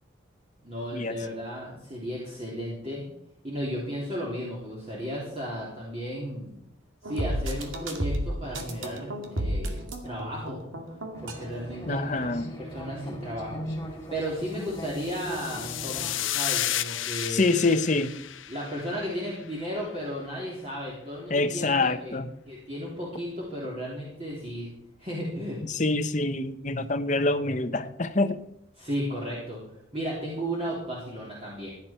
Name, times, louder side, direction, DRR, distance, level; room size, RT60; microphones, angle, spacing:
voice 1, 0.6-3.1 3.4-6.5 7.0-10.6 11.2-13.7 14.1-17.4 18.5-22.1 22.5-24.7 25.0-25.9 28.8-29.6 29.9-31.7, equal, 30° right, -4 dB, 3.2 m, -34 dB
sound 1, 7.0-11.5, right 1 dB, 90° right, 2.4 m, -32 dB
sound 2, 11.1-16.1, equal, 15° left, 2.4 m, -41 dB
voice 2, 11.9-12.5 13.5-13.9 17.3-18.1 21.3-22.3 25.6-28.4, left 2 dB, 40° left, 10 dB, 0.9 m, -26 dB
sound 3, 14.8-19.3, left 13 dB, 85° left, 0.8 m, -32 dB
16.0 x 11.0 x 4.4 m, 0.76 s
head